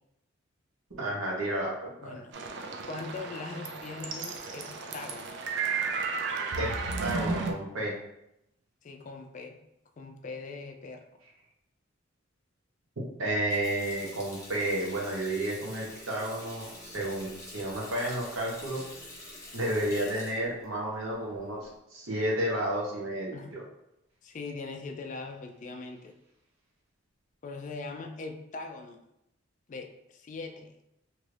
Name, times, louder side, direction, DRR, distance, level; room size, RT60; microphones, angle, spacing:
voice 1, 1.0-2.1 6.6-6.7 7.0-7.9 13.2-18.8 19.5-23.6, right 1 dB, 85° right, -3 dB, 0.9 m, -31 dB
voice 2, 2.0-2.4 2.9-5.3 8.8-9.6 10.0-11.0 23.3-23.5 24.2-26.1 27.4-29.0 29.7-30.7, left 3 dB, 40° left, 4 dB, 0.3 m, -41 dB
sound 1, 2.3-7.5, right 4 dB, 60° right, 0.4 m, -33 dB
Water tap faucet, 13.3-21.8, left 1 dB, 15° left, 0.8 m, -47 dB
2.9 x 2.5 x 3.2 m, 0.84 s
head